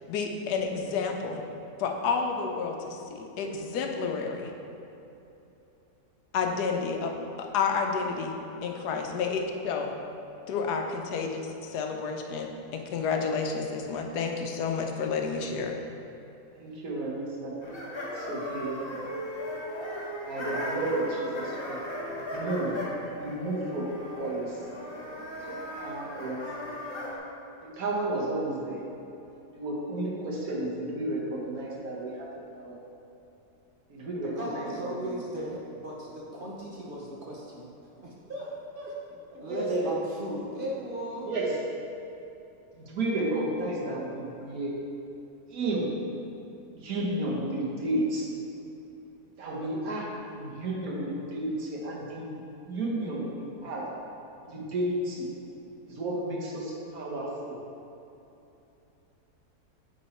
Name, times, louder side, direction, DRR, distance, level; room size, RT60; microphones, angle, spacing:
voice 1, 0.1-1.4 1.8-4.5 6.3-7.1 7.4-8.4 8.6-9.9 10.5-15.7, left 5 dB, 85° left, 3 dB, 1.2 m, -30 dB
voice 2, 16.5-17.6 18.0-19.0 20.2-21.8 22.3-22.8 23.1-24.6 25.8-26.8 27.6-28.8 29.5-32.3 32.5-32.8 33.9-34.7 35.0-35.2 39.5-39.8 41.3-41.5 42.8-44.7 45.5-45.9 46.7-48.3 49.4-53.9 54.4-55.3 55.8-57.6, right 1 dB, 65° right, -4 dB, 1.6 m, -32 dB
sound 1, 17.6-27.2, equal, 20° left, 1.0 m, -37 dB
voice 3, 34.2-37.7 38.0-39.0 39.4-41.3, equal, 40° right, -4 dB, 0.8 m, -37 dB
8.5 x 3.9 x 4.2 m, 3.0 s
omnidirectional pair, 1.7 m